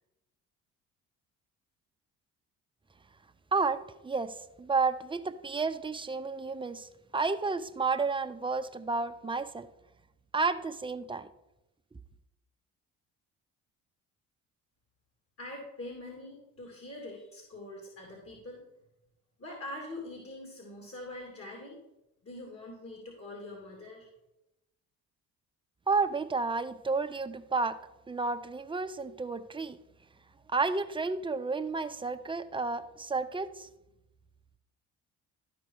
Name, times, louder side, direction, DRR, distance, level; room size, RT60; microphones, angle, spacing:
voice 1, 3.5-9.7 10.3-11.3 25.9-27.8 28.1-29.8 30.5-33.7, right 4 dB, 15° right, 9 dB, 0.7 m, -31 dB
voice 2, 15.4-18.6 19.4-21.8 22.2-24.1, left 1 dB, 40° left, 0 dB, 2.5 m, -44 dB
12.5 x 5.1 x 4.6 m, 0.93 s
supercardioid pair, 70°, 34 cm